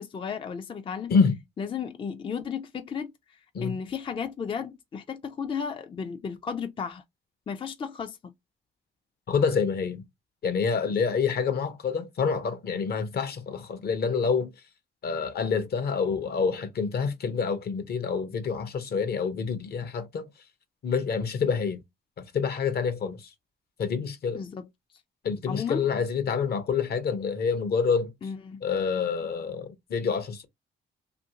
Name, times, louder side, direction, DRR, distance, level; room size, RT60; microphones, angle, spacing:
voice 1, 0.0-1.1 1.6-7.0 7.5-8.3 24.3-24.7 25.5-25.9 28.2-28.6, left 6 dB, 25° left, 0.4 m, -34 dB
voice 2, 9.3-10.0 10.4-14.5 15.0-20.2 20.8-21.8 22.2-23.3 23.8-24.4 25.2-28.1 28.6-30.5, left 5 dB, 55° left, 0.7 m, -27 dB
2.8 x 2.5 x 2.7 m
cardioid pair, 90°, 20 cm